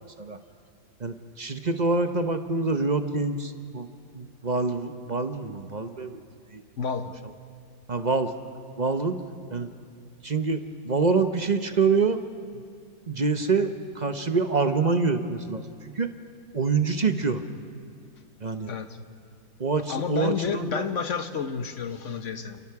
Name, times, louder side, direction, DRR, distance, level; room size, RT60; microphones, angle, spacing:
voice 1, 1.0-3.9 4.1-6.2 6.5-6.6 7.9-8.3 8.8-9.2 9.5-9.7 10.2-12.2 12.5-12.6 13.1-15.6 16.0-16.1 16.5-17.4 18.4-18.7 19.6-20.8, right 4 dB, 35° right, 8 dB, 0.8 m, -26 dB
voice 2, 6.8-7.2 18.7-18.9 19.9-22.6, left 6 dB, 50° left, 9 dB, 1.3 m, -30 dB
29.0 x 28.5 x 4.8 m, 2.2 s
omnidirectional pair, 1.8 m